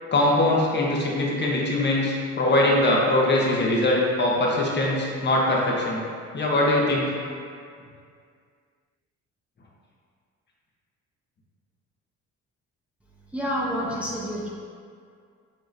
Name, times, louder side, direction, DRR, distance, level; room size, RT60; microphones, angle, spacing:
voice 1, 0.1-6.0 6.3-7.1, left 1 dB, 35° left, -3 dB, 0.9 m, -22 dB
voice 2, 13.3-14.5, equal, 5° right, -5 dB, 0.6 m, -28 dB
7.1 x 2.9 x 2.6 m, 2.2 s
cardioid pair, 90°, 30 cm